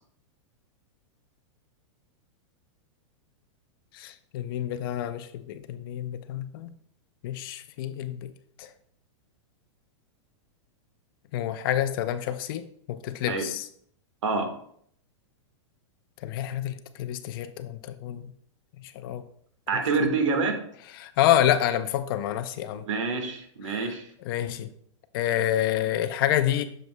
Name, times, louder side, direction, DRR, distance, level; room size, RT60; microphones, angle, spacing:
voice 1, 3.9-6.7 7.2-8.3 8.6-8.7 11.3-13.7 16.2-18.3 18.8-19.2 20.0-20.1 20.9-22.8 23.7-23.9 24.2-24.7 25.1-26.6, left 11 dB, 45° left, 11 dB, 0.6 m, -28 dB
voice 2, 19.7-20.6 22.8-24.0, right 4 dB, 85° right, 5 dB, 1.5 m, -26 dB
7.7 x 6.7 x 2.2 m, 0.64 s
supercardioid pair, 155°, 16 cm